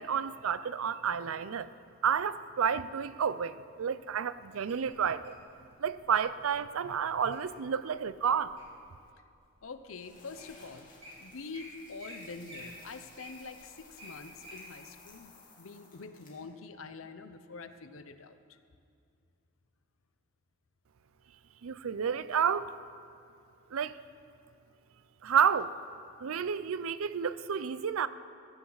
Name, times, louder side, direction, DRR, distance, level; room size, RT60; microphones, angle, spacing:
voice 1, 0.0-1.7 2.0-5.4 5.8-8.5 21.6-22.7 23.7-24.0 25.2-25.8 26.2-28.1, right 7 dB, 85° right, 0.5 m, -30 dB
Wild animals, 4.7-5.4 6.1-6.4 6.9-7.4 7.9-8.8 9.4-9.5 10.1-10.2 10.4-10.5 10.8-11.1 11.5-11.7 12.0-12.2 12.4-14.6 15.1-15.2, equal, 25° right, 3.3 m, -49 dB
voice 2, 9.6-10.9 11.2-18.6, left 4 dB, 75° left, 0.7 m, -46 dB
sound 1, 9.9-16.5, left 3 dB, 40° left, 2.9 m, -57 dB
15.5 x 14.5 x 4.0 m
head